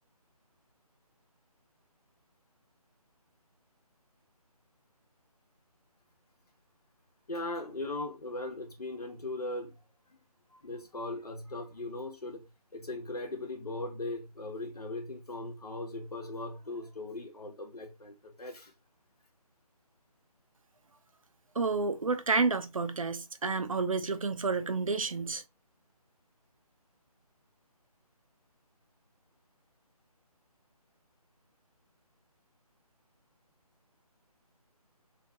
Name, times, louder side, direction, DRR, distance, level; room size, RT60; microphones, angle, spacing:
voice 1, 7.3-9.7 10.6-12.4 12.7-18.7, left 2 dB, 75° left, 1.7 m, -39 dB
voice 2, 21.6-25.4, right 4 dB, 60° right, 0.6 m, -30 dB
3.9 x 2.5 x 3.6 m
figure-of-eight pair, 175°, 20 cm